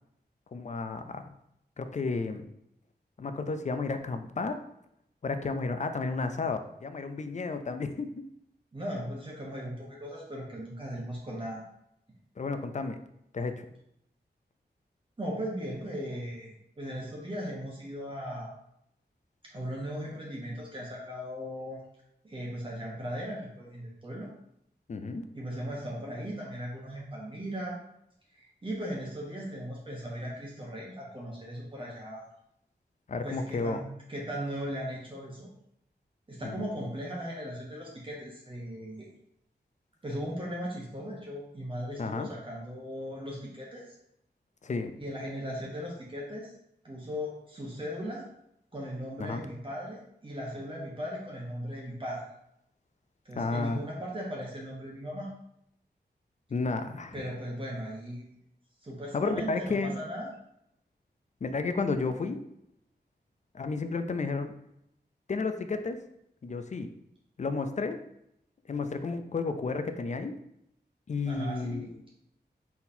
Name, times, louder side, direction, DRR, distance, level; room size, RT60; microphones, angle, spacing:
voice 1, 0.5-1.3 1.8-2.5 3.2-4.6 5.2-8.3 12.4-13.0 13.3-13.7 24.9-25.2 33.1-33.8 36.4-36.7 42.0-42.3 44.6-44.9 49.2-49.4 53.4-53.8 56.5-57.1 59.1-60.0 61.4-62.4 63.5-64.5 65.3-66.0 66.4-66.9 67.4-68.0 68.7-70.4 71.1-72.0, left 4 dB, 45° left, 8 dB, 0.4 m, -32 dB
voice 2, 8.7-11.6 15.2-18.5 19.5-21.8 22.2-24.3 25.3-27.8 28.3-32.3 33.2-35.5 36.3-39.1 40.0-43.9 45.0-46.5 46.8-48.3 48.7-52.2 53.2-55.3 57.1-58.2 58.8-60.3 71.2-71.9, equal, 30° right, -4 dB, 1.0 m, -38 dB
4.2 x 3.9 x 2.7 m, 0.76 s
wide cardioid pair, 90°, 17 cm